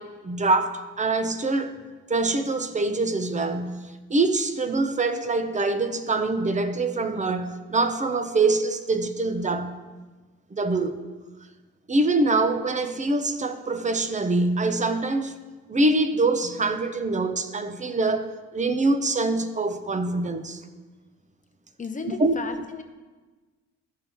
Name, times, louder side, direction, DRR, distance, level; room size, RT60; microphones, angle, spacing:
voice 1, 0.0-1.7 2.1-3.8 4.1-9.7 10.5-10.9 11.9-15.3 15.7-20.6 22.0-22.3, right 2 dB, 25° right, 9 dB, 0.8 m, -24 dB
voice 2, 21.8-22.8, left 5 dB, 25° left, 6 dB, 0.8 m, -34 dB
14.0 x 5.4 x 3.1 m, 1.3 s
cardioid pair, 90°, 30 cm